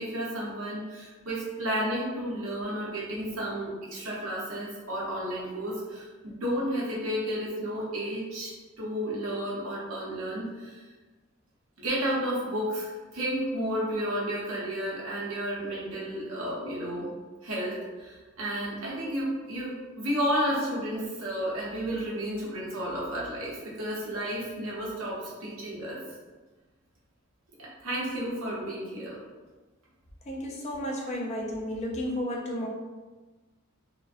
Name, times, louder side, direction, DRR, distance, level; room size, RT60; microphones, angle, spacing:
voice 1, 0.0-10.8 11.8-17.1 17.4-26.0 27.6-29.2, equal, 75° right, -6 dB, 0.8 m, -32 dB
voice 2, 30.3-32.7, equal, 30° left, -1 dB, 0.3 m, -32 dB
2.4 x 2.1 x 2.4 m, 1.3 s
head